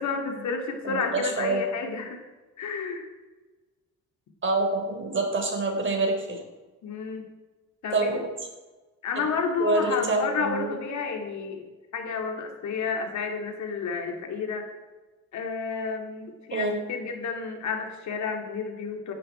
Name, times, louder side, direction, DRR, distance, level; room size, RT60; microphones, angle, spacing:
voice 1, 0.0-2.2 2.6-3.1 6.8-7.2 7.8-8.2 9.0-11.6 11.9-14.7 15.3-19.1, left 5 dB, 70° left, 4 dB, 2.7 m, -31 dB
voice 2, 0.8-1.6 4.4-6.4 7.9-8.3 9.2-9.3 9.6-10.7 16.5-16.8, right 2 dB, 40° right, 3 dB, 4.1 m, -26 dB
16.0 x 12.0 x 4.5 m, 1.2 s
cardioid pair, 90°, 30 cm